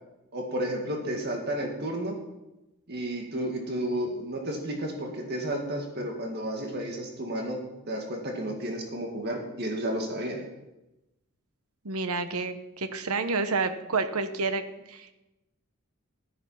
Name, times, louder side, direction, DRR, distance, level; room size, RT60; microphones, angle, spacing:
voice 1, 0.3-2.2 2.9-7.6 7.9-10.4, right 1 dB, 50° right, 1 dB, 2.0 m, -32 dB
voice 2, 11.8-14.6 14.9-15.1, right 4 dB, 85° right, 9 dB, 1.0 m, -29 dB
13.5 x 9.6 x 5.8 m, 0.99 s
head